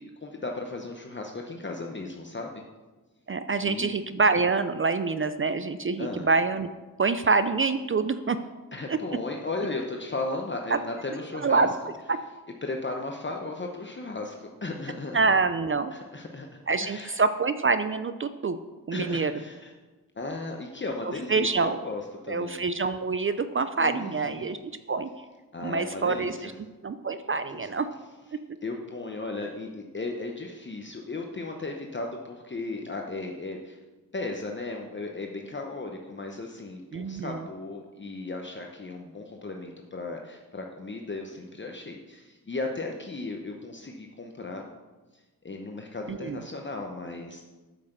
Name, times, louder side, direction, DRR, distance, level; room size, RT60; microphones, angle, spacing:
voice 1, 0.0-2.6 3.6-3.9 6.0-6.3 8.7-11.7 12.6-15.2 15.9-17.1 18.9-19.7 20.1-22.6 23.8-24.5 25.5-26.5 27.5-27.7 28.6-33.8 34.1-44.6 45.1-47.4, left 2 dB, 30° left, 2 dB, 0.9 m, -36 dB
voice 2, 3.3-6.7 7.0-8.4 8.9-9.0 10.7-10.8 11.4-11.7 12.1-12.2 15.1-15.9 16.7-18.6 18.9-19.3 21.3-21.8 22.3-24.6 24.9-25.1 25.6-26.5 26.8-27.9 28.3-28.4 36.9-37.4 46.1-46.4, right 4 dB, 35° right, 11 dB, 0.4 m, -26 dB
8.3 x 6.0 x 6.6 m, 1.2 s
wide cardioid pair, 85°, 35 cm